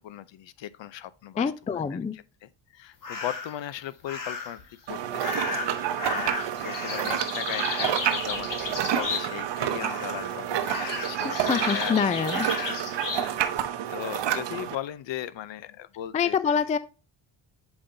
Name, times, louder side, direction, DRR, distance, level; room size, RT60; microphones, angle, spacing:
voice 1, 0.0-12.0 12.6-13.5 13.9-16.6, left 12 dB, 65° left, 0.7 m, -38 dB
voice 2, 1.4-2.2 11.2-12.5 16.1-16.8, left 6 dB, 15° left, 0.3 m, -26 dB
sound 1, 3.0-3.6 4.1-4.6 5.2-9.5 9.8-10.3 10.6-13.3, left 4 dB, 40° left, 1.6 m, -34 dB
sound 2, 4.9-14.8, right 10 dB, 60° right, 0.8 m, -29 dB
7.1 x 5.1 x 2.7 m
cardioid pair, 95°, 49 cm